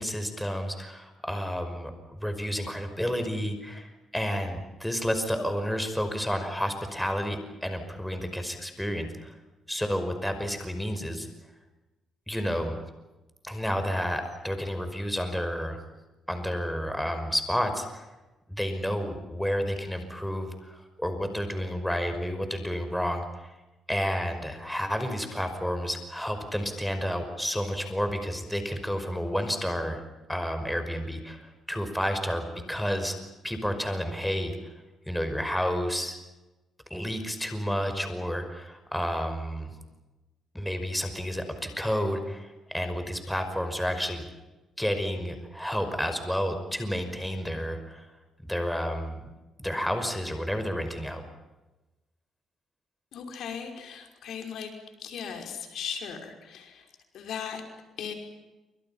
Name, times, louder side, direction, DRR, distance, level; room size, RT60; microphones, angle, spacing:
voice 1, 0.0-9.4 9.7-11.3 12.3-12.8 13.4-15.8 16.3-18.1 18.5-23.5 23.9-30.0 30.3-33.2 33.4-34.7 35.1-36.2 36.9-39.7 40.5-44.2 44.8-48.1 48.4-49.3 49.6-51.2, equal, 5° left, 7 dB, 5.5 m, -30 dB
voice 2, 53.1-54.7 55.0-57.6 58.0-58.1, left 7 dB, 75° left, 4 dB, 5.5 m, -38 dB
28.5 x 25.5 x 5.8 m, 1.1 s
cardioid pair, 90°, 0 cm